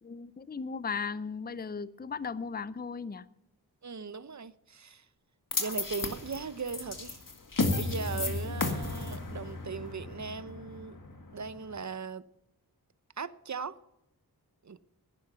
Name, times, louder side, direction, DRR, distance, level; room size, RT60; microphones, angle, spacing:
voice 1, 0.0-3.3, left 5 dB, 25° left, 0.5 m, -36 dB
voice 2, 3.8-5.1 5.6-7.2 7.7-11.0 11.3-12.2 13.2-13.8 14.6-14.8, right 5 dB, 45° right, 0.8 m, -38 dB
sound 1, 5.5-11.8, left 3 dB, 55° left, 2.0 m, -34 dB
11.0 x 10.0 x 6.8 m
wide cardioid pair, 60°, 39 cm